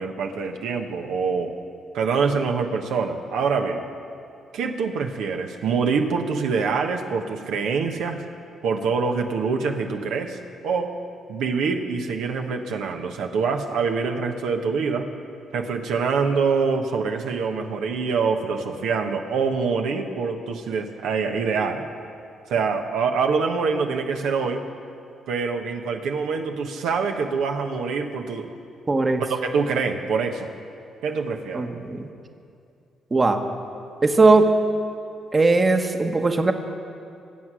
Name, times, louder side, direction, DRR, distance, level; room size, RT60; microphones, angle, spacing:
voice 1, 0.0-1.5 1.9-3.8 4.5-8.2 8.6-10.4 10.6-10.9 11.3-15.1 15.5-21.9 22.5-24.6 25.3-28.5 29.2-30.5 31.0-31.7, right 5 dB, 80° right, 4 dB, 1.2 m, -25 dB
voice 2, 28.9-29.2 31.5-32.1 33.1-33.4 34.0-34.6 35.3-36.5, right 3 dB, 30° right, 6 dB, 1.2 m, -19 dB
23.0 x 8.4 x 6.2 m, 2.5 s
cardioid pair, 90°, 0 cm